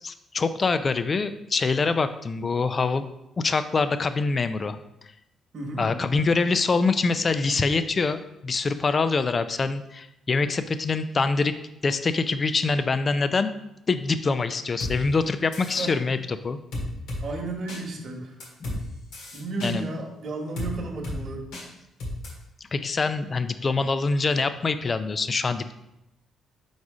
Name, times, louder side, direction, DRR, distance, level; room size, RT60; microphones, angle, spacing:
voice 1, 0.0-3.1 3.4-4.8 5.8-11.5 11.8-13.5 13.9-16.6 18.6-18.7 19.6-19.8 22.7-25.7, left 4 dB, 35° left, 11 dB, 0.4 m, -25 dB
voice 2, 5.5-5.9 15.8-16.0 17.2-18.3 19.3-21.4, right 3 dB, 55° right, 1 dB, 1.2 m, -33 dB
sound 1, 14.8-14.9 15.5-15.9 16.7-17.2 17.7-17.8 18.4-18.8 19.1-19.7 20.6-20.7 21.0-21.2 21.5-21.7 22.0-22.3, left 1 dB, 90° left, 1.8 m, -32 dB
4.8 x 4.1 x 4.8 m, 0.86 s
cardioid pair, 90°, 0 cm